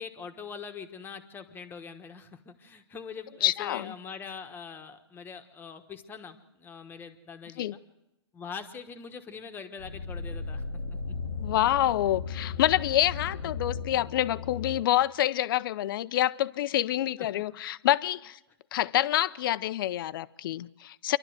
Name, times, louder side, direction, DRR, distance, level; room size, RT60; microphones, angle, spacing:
voice 1, 0.0-7.8 8.3-10.6 10.9-11.1 17.2-17.4, left 6 dB, 15° left, 7 dB, 1.3 m, -43 dB
voice 2, 3.4-3.9 7.6-7.7 11.4-18.4 18.7-21.2, left 13 dB, 45° left, 16 dB, 0.6 m, -27 dB
sound 1, 9.8-14.8, left 5 dB, 90° left, 1.1 m, -36 dB
27.5 x 12.0 x 7.9 m, 0.95 s
hypercardioid pair, 140°, 15 cm